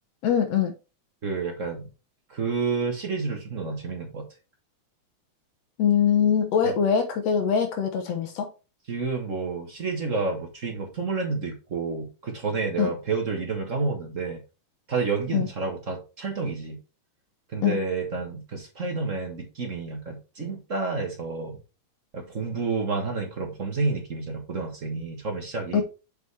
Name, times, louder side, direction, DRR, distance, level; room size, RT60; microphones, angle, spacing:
voice 1, 0.2-0.7 5.8-8.5 12.8-12.9 15.3-15.5 17.6-17.8 25.7-25.8, left 7 dB, 65° left, 1.9 m, -23 dB
voice 2, 1.2-1.8 2.3-4.3 8.9-14.4 14.9-16.8 17.5-21.6 22.1-25.8, right 4 dB, 45° right, 1.1 m, -29 dB
7.3 x 5.1 x 3.3 m
omnidirectional pair, 3.5 m